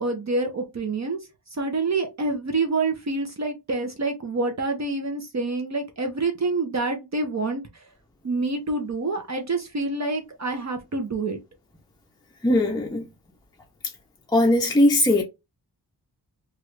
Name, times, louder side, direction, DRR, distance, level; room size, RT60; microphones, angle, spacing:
voice 1, 0.0-7.9 8.2-11.4, right 3 dB, 40° right, 0.6 m, -27 dB
voice 2, 12.4-13.1 14.3-15.2, left 1 dB, 10° left, 0.5 m, -19 dB
3.1 x 2.4 x 3.1 m
wide cardioid pair, 105°, 42 cm